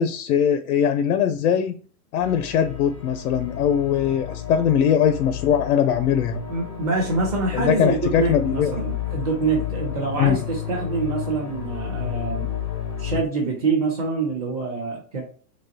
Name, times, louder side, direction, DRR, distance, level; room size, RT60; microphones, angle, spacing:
voice 1, 0.0-1.8 2.1-6.4 7.5-8.7 10.2-10.4, left 8 dB, 70° left, 10 dB, 0.6 m, -21 dB
sound 1, 2.2-13.2, left 9 dB, 20° left, 0.4 m, -31 dB
voice 2, 6.5-12.5 13.0-15.2, right 4 dB, 25° right, -1 dB, 0.6 m, -25 dB
3.9 x 3.2 x 2.7 m, 0.41 s
supercardioid pair, 175°, 46 cm